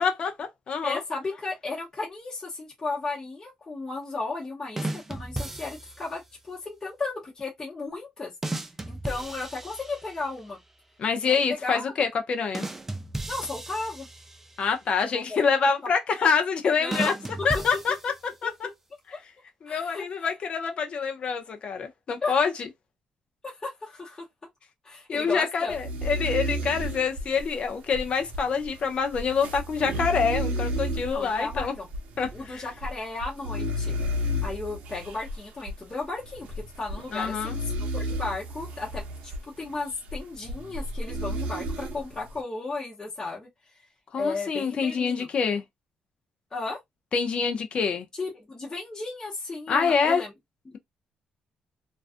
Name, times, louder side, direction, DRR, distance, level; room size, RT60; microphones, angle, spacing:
voice 1, 0.0-1.0 11.0-12.6 14.6-17.1 17.4-18.7 19.6-22.7 25.1-31.7 32.2-32.7 37.1-37.6 44.1-45.6 47.1-48.1 49.7-50.2, left 5 dB, 45° left, 0.5 m, -26 dB
voice 2, 0.8-8.3 8.9-10.6 11.2-11.8 13.3-14.1 15.1-15.4 16.8-17.1 17.4-17.6 18.4-18.5 19.1-19.2 19.7-20.3 22.2-22.4 23.4-24.3 24.8-25.7 31.0-31.9 32.3-34.0 34.4-43.5 44.2-45.3 46.5-46.8 48.2-50.3 50.7-50.8, left 3 dB, 25° left, 0.8 m, -34 dB
sound 1, 4.8-6.2 8.4-10.4 12.5-14.7 16.9-18.5, right 2 dB, 10° right, 0.3 m, -35 dB
sound 2, 25.7-42.4, equal, 75° right, 0.7 m, -33 dB
2.4 x 2.3 x 2.4 m
cardioid pair, 130°, 3 cm